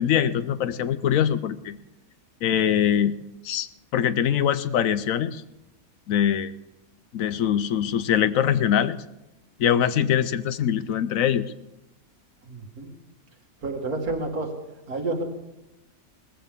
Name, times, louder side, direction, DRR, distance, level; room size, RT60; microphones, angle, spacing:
voice 1, 0.0-1.8 2.4-3.2 3.4-3.7 3.9-5.4 6.1-6.5 7.1-9.0 9.6-11.4, left 9 dB, 70° left, 14 dB, 1.0 m, -23 dB
voice 2, 12.5-12.9 13.6-14.5 14.9-15.2, right 2 dB, 85° right, 2 dB, 2.4 m, -29 dB
19.0 x 14.5 x 3.6 m, 0.93 s
omnidirectional pair, 1.5 m